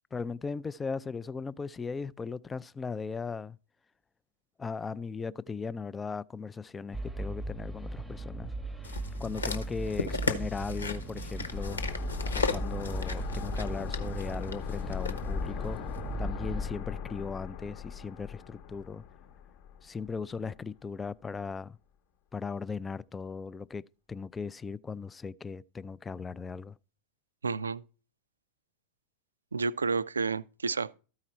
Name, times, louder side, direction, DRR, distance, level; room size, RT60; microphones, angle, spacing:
voice 1, 0.1-3.6 4.6-8.5 9.2-11.8 12.3-15.8 16.2-19.0 19.8-21.8 22.3-23.8 24.1-26.8, left 5 dB, 15° left, 0.3 m, -38 dB
sound 1, 6.9-16.7, right 2 dB, 5° right, 0.8 m, -38 dB
sound 2, 8.8-15.2 15.9-16.0, left 4 dB, 75° left, 1.0 m, -36 dB
sound 3, 11.5-20.2 20.5-20.6, left 8 dB, 45° left, 0.9 m, -39 dB
voice 2, 27.4-27.8 29.5-30.9, right 4 dB, 75° right, 0.3 m, -30 dB
13.5 x 4.8 x 4.2 m
figure-of-eight pair, 90°, 0 cm